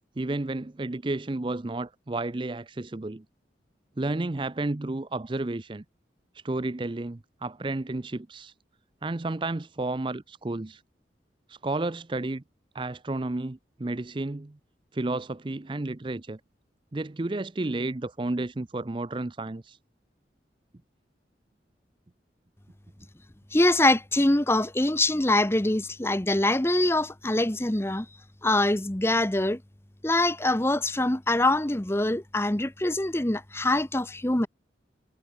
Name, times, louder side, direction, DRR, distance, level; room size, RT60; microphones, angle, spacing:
voice 1, 0.2-3.2 4.0-5.8 6.4-8.5 9.0-10.8 11.5-12.4 12.7-14.6 14.9-16.4 16.9-19.8, right 2 dB, 30° right, 0.5 m, -31 dB
voice 2, 23.5-28.1 28.4-29.6 30.0-34.5, left 2 dB, 15° left, 0.8 m, -24 dB
head